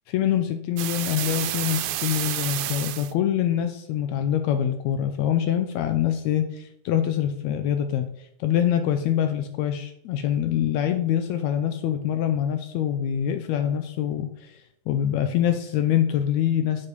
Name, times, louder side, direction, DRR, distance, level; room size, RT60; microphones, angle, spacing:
voice 1, 0.1-16.9, left 10 dB, 80° left, 7 dB, 1.8 m, -25 dB
sound 1, 0.8-3.1, right 14 dB, 80° right, 1.8 m, -29 dB
8.1 x 5.5 x 5.2 m, 0.76 s
omnidirectional pair, 3.3 m